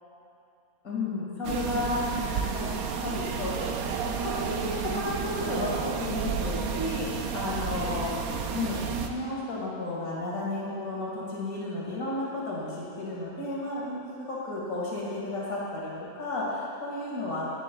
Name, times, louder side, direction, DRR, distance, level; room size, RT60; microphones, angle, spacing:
voice 1, 0.8-2.2 2.5-2.7 3.0-8.2 8.5-8.8 9.1-17.4, left 2 dB, 80° left, -5 dB, 2.4 m, -33 dB
sound 1, 1.4-9.1, right 6 dB, 90° right, 1.2 m, -31 dB
17.0 x 11.0 x 2.3 m, 2.7 s
omnidirectional pair, 1.5 m